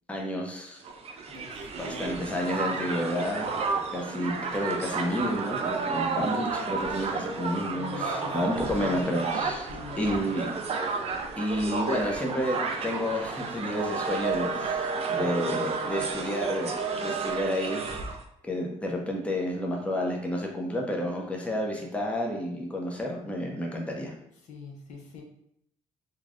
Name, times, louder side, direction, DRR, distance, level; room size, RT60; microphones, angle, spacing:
voice 1, 0.1-0.8 1.8-3.5 3.9-9.7 10.0-10.5 11.4-16.7 17.0-17.9 18.4-24.1, left 1 dB, 10° left, 0 dB, 0.6 m, -30 dB
Crowd, 0.8-18.2, right 4 dB, 55° right, 0.4 m, -31 dB
voice 2, 1.3-2.8 7.7-8.4 8.6-10.2 24.5-25.2, left 5 dB, 75° left, 0 dB, 0.6 m, -44 dB
3.1 x 2.3 x 2.5 m, 0.73 s
cardioid pair, 85°, 12 cm